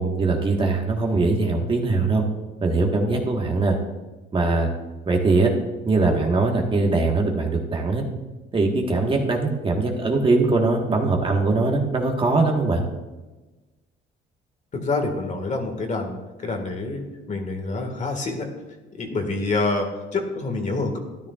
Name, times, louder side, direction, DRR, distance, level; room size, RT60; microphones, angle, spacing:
voice 1, 0.0-2.2 2.6-3.8 4.3-4.7 5.1-5.5 5.8-8.0 8.5-12.8, right 3 dB, 30° right, 1 dB, 1.5 m, -21 dB
voice 2, 14.7-16.2 16.4-18.5 18.9-20.9, left 3 dB, 40° left, 4 dB, 1.8 m, -27 dB
13.0 x 10.5 x 2.4 m, 1.2 s
cardioid pair, 100°, 19 cm